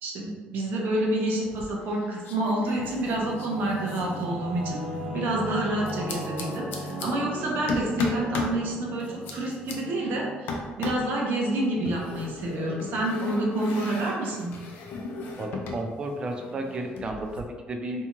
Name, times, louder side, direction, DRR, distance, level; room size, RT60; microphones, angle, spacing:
voice 1, 0.0-4.9 5.1-14.6, right 1 dB, 65° right, -2 dB, 0.7 m, -28 dB
sound 1, 1.4-2.0 2.2-4.9 5.9-7.1 7.7-8.6 9.0-9.7 10.5-11.1 11.9-15.9 16.1-17.4, left 2 dB, 75° left, 0.4 m, -35 dB
Singing / Musical instrument, 2.4-11.6, equal, 80° right, 1.0 m, -37 dB
voice 2, 15.4-18.1, right 2 dB, 30° right, 4 dB, 0.3 m, -33 dB
2.7 x 2.3 x 2.9 m, 1.4 s
cardioid pair, 140°, 3 cm